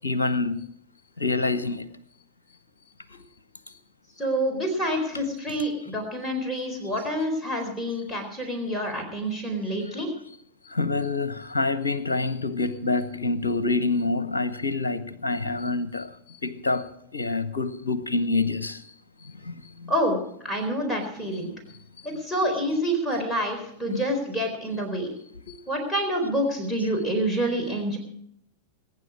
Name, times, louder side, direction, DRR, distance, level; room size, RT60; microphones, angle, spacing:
voice 1, 0.0-0.6 1.2-1.9 10.7-16.1 16.4-16.9 17.1-18.8 23.9-24.0 25.5-25.6, left 3 dB, 70° left, 0.9 m, -26 dB
voice 2, 4.2-10.1 19.9-20.2 20.4-21.5 22.0-25.1 25.7-28.0, equal, 10° left, 4.1 m, -27 dB
21.5 x 9.8 x 4.8 m
figure-of-eight pair, 90°, 0 cm